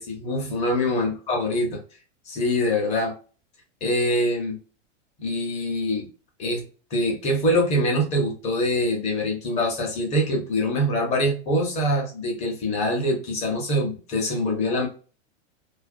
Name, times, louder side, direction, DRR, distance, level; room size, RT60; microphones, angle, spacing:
voice 1, 0.0-1.8 2.3-3.1 3.8-4.6 5.2-6.1 6.4-6.6 6.9-14.9, left 1 dB, 20° left, 1 dB, 0.6 m, -24 dB
2.4 x 2.1 x 2.4 m, 0.36 s
supercardioid pair, 155°, 36 cm